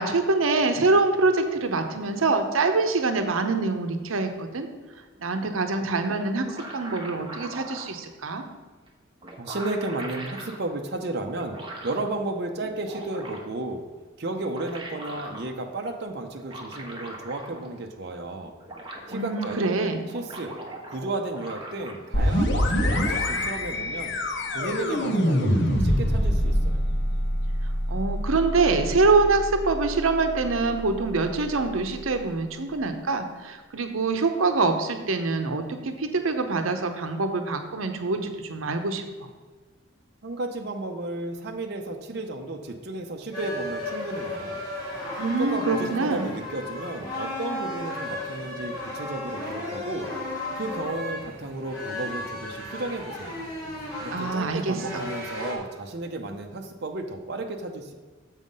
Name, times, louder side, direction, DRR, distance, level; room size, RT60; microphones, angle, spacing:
voice 1, 0.0-4.7 5.2-8.4 19.1-20.0 27.9-39.0 45.2-46.3 54.1-55.0, right 3 dB, 90° right, 7 dB, 0.8 m, -25 dB
sound 1, 6.2-7.9 8.9-9.0 9.2-10.6 11.3-12.1 12.6-13.6 14.3-15.5 16.4-17.8 18.1-18.2 18.4-19.6 20.0-22.2 22.5-23.5, right 1 dB, 25° right, 1.1 m, -40 dB
voice 2, 9.4-11.6 11.8-13.8 14.2-18.5 19.1-19.8 20.1-20.5 20.9-24.2 24.5-26.8 40.2-44.6 45.4-50.1 50.6-53.4 54.0-57.9, right 2 dB, 55° right, 3 dB, 0.7 m, -33 dB
sound 2, 22.1-31.7, equal, 60° left, 0.9 m, -26 dB
sound 3, 43.3-55.5, left 2 dB, 20° left, 2.3 m, -34 dB
7.2 x 5.6 x 5.3 m, 1.4 s
head